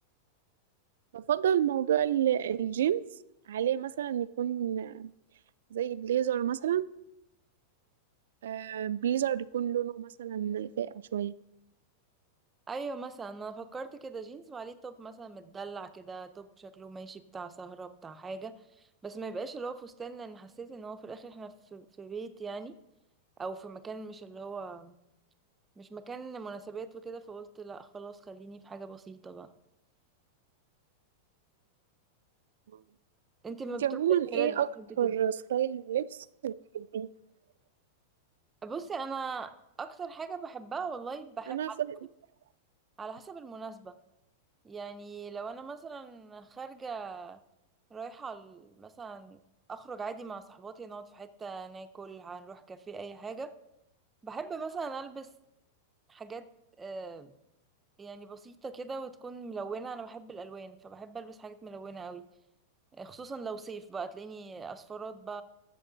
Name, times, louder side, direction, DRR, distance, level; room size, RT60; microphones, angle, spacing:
voice 1, 1.1-3.0 3.5-5.1 5.7-6.9 8.4-11.3 33.8-34.7 35.0-37.1 41.5-41.7, right 10 dB, 85° right, 0.4 m, -29 dB
voice 2, 12.7-22.8 23.4-24.9 25.8-29.5 33.4-34.0 34.2-35.1 38.6-41.8 43.0-43.9 44.6-47.4 47.9-49.4 49.7-53.5 54.2-55.3 56.1-56.5 56.8-57.3 58.0-62.2 62.9-65.4, right 4 dB, 15° right, 0.5 m, -41 dB
13.5 x 6.9 x 3.9 m
supercardioid pair, 160°, 0 cm